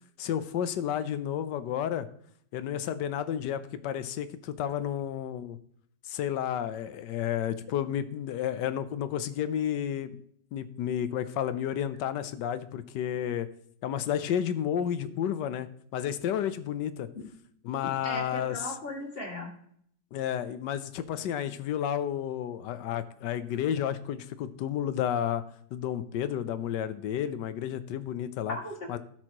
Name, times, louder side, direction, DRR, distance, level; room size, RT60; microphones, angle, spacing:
voice 1, 0.2-2.1 2.5-5.6 6.1-10.2 10.5-13.5 13.8-15.7 15.9-17.1 17.6-18.7 20.1-25.4 25.7-28.6 28.9-29.0, left 10 dB, 75° left, 13 dB, 1.3 m, -31 dB
voice 2, 17.8-19.5 28.5-29.0, left 1 dB, 30° left, -1 dB, 2.3 m, -37 dB
16.5 x 6.2 x 3.0 m, 0.65 s
omnidirectional pair, 2.0 m